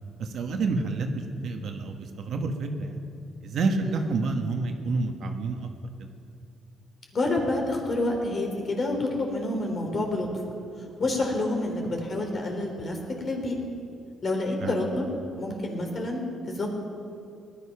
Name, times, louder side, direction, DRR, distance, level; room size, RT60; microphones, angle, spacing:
voice 1, 0.2-3.0 3.4-5.7 6.0-6.1 14.6-14.7, right 3 dB, 65° right, 4 dB, 1.5 m, -29 dB
voice 2, 7.1-10.3 11.0-13.0 13.2-13.5 14.2-15.1 15.3-16.2 16.5-16.8, left 2 dB, 45° left, 2 dB, 3.4 m, -28 dB
18.5 x 11.0 x 5.8 m, 2.5 s
cardioid pair, 90°, 0 cm